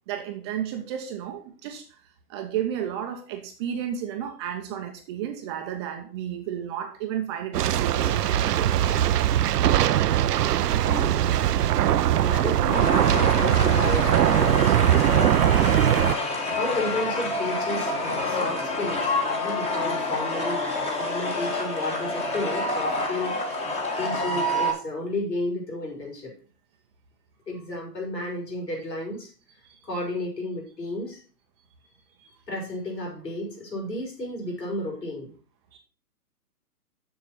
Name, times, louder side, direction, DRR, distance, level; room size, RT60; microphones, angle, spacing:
voice 1, 0.1-1.8 2.3-8.9 18.9-19.0 29.7-29.8 35.7-35.8, right 9 dB, 15° right, 4 dB, 0.6 m, -32 dB
sound 1, 7.5-16.1, right 11 dB, 75° right, 0.6 m, -21 dB
voice 2, 10.9-11.2 12.1-15.5 16.4-20.6 21.0-23.7 24.0-26.3 27.5-29.3 29.8-31.2 32.5-35.3, left 1 dB, 85° left, 0 dB, 5.3 m, -32 dB
sound 2, 12.7-24.7, left 2 dB, 15° left, 1.4 m, -28 dB
7.3 x 6.6 x 5.7 m, 0.40 s
hypercardioid pair, 135°, 48 cm